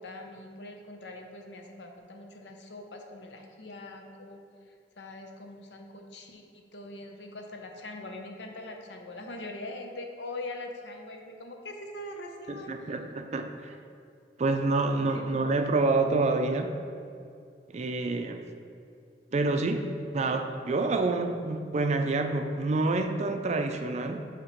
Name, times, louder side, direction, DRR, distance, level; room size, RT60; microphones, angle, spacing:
voice 1, 0.0-4.4 5.0-12.9 15.1-15.5, left 2 dB, 75° left, 3 dB, 0.7 m, -42 dB
voice 2, 12.5-13.7 14.4-16.7 17.7-18.4 19.3-24.3, right 3 dB, 40° right, 6 dB, 0.4 m, -28 dB
8.2 x 2.9 x 4.4 m, 2.4 s
head